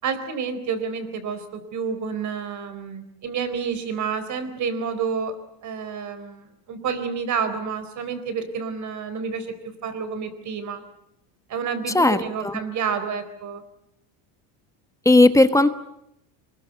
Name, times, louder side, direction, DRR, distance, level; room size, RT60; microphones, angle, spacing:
voice 1, 0.0-5.4 5.6-10.8 11.5-13.6, right 6 dB, 40° right, 11 dB, 4.1 m, -29 dB
voice 2, 11.9-12.6 15.0-15.7, left 2 dB, 5° left, 11 dB, 1.2 m, -16 dB
25.0 x 21.0 x 8.2 m, 0.78 s
supercardioid pair, 135°, 45 cm